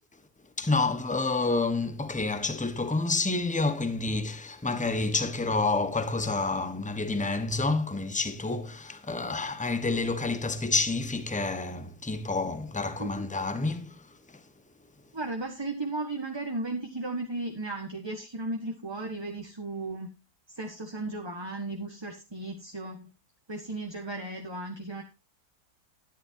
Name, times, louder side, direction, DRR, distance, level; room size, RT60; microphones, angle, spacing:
voice 1, 0.6-14.0, left 3 dB, 5° left, 1.1 m, -29 dB
voice 2, 15.1-20.1 20.5-23.1 23.5-25.0, right 2 dB, 15° right, 1.5 m, -35 dB
13.0 x 10.5 x 2.8 m
omnidirectional pair, 1.7 m